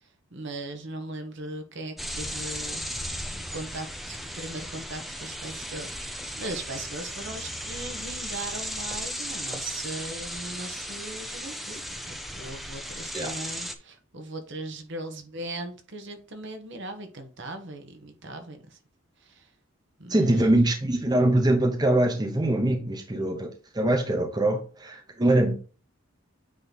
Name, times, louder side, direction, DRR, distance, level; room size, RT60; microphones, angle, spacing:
voice 1, 0.3-2.8 3.5-11.8 12.1-18.8 19.2-19.5 20.0-20.5, right 2 dB, 60° right, 1.2 m, -39 dB
sound 1, 2.0-13.8, equal, ahead, 0.5 m, -36 dB
voice 2, 20.1-23.5 23.7-25.6, right 1 dB, 20° right, 0.9 m, -23 dB
8.7 x 3.1 x 4.0 m
head